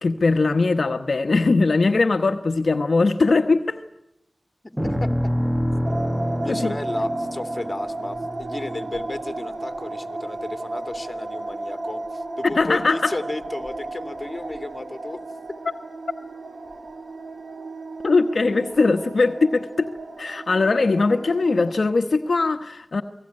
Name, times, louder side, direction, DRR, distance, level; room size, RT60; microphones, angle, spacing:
voice 1, 0.0-3.8 6.5-6.7 12.4-13.1 18.0-19.9 20.2-23.0, left 3 dB, 70° left, 6 dB, 1.1 m, -20 dB
voice 2, 4.6-5.3 6.4-15.2, left 2 dB, 35° left, 8 dB, 2.7 m, -33 dB
sound 1, 4.8-9.2, equal, 10° right, 1.5 m, -27 dB
sound 2, 5.8-21.7, right 2 dB, 70° right, 2.8 m, -34 dB
28.5 x 18.5 x 9.7 m, 0.85 s
cardioid pair, 45°, 0 cm